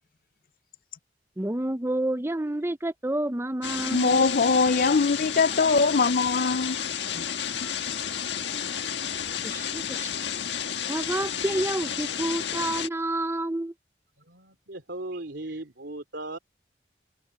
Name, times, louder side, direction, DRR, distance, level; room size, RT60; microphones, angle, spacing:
voice 1, 1.4-4.2 9.4-10.1 10.9-13.7, right 1 dB, 15° right, 0.6 m, -29 dB
sound 1, 3.6-12.9, left 8 dB, 80° left, 1.5 m, -31 dB
voice 2, 3.9-6.8, left 4 dB, 50° left, 0.6 m, -22 dB
voice 3, 14.3-16.4, right 2 dB, 75° right, 3.3 m, -37 dB
head